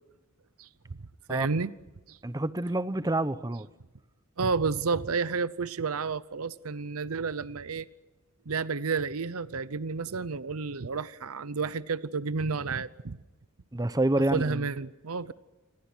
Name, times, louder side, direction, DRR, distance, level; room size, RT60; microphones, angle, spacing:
voice 1, 1.3-1.7 2.1-2.2 4.4-7.9 8.5-13.2 14.3-15.3, right 4 dB, 75° right, 0.8 m, -31 dB
voice 2, 2.2-3.7 13.7-14.6, right 1 dB, 15° right, 0.8 m, -27 dB
29.0 x 25.5 x 6.2 m
head